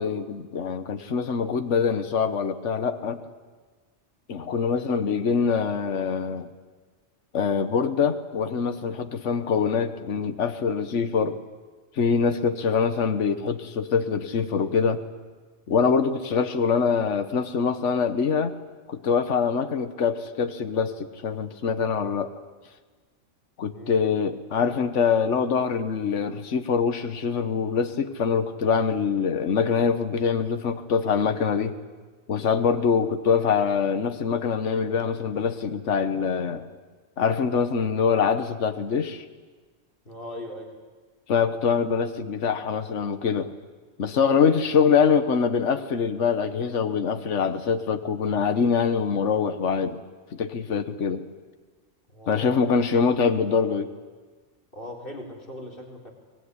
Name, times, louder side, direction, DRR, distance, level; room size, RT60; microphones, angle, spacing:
voice 1, 0.0-3.2 4.3-6.5 7.3-11.4 12.0-15.0 15.7-18.5 18.9-22.3 23.6-31.7 32.3-36.7 37.2-39.2 41.3-43.5 44.0-50.0 50.3-51.2 52.3-53.9, left 6 dB, 70° left, 9 dB, 1.5 m, -24 dB
voice 2, 23.6-24.0 40.0-40.7 44.5-44.8 52.1-52.6 54.7-56.1, left 1 dB, 45° left, 0 dB, 4.3 m, -39 dB
24.0 x 20.0 x 9.8 m, 1.4 s
omnidirectional pair, 1.3 m